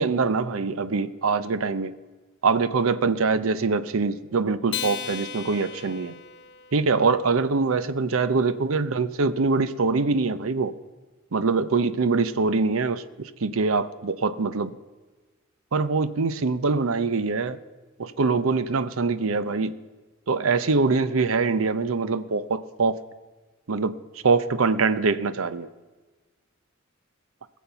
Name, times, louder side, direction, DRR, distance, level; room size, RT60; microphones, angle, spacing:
voice 1, 0.0-1.9 2.4-6.2 6.7-10.7 11.3-14.7 15.7-17.6 18.0-19.7 20.3-23.0 23.7-24.0 24.2-25.7, right 4 dB, 85° right, 14 dB, 0.7 m, -24 dB
Acoustic guitar, 4.7-7.4, left 8 dB, 55° left, 1.2 m, -36 dB
20.5 x 7.2 x 5.8 m, 1.3 s
head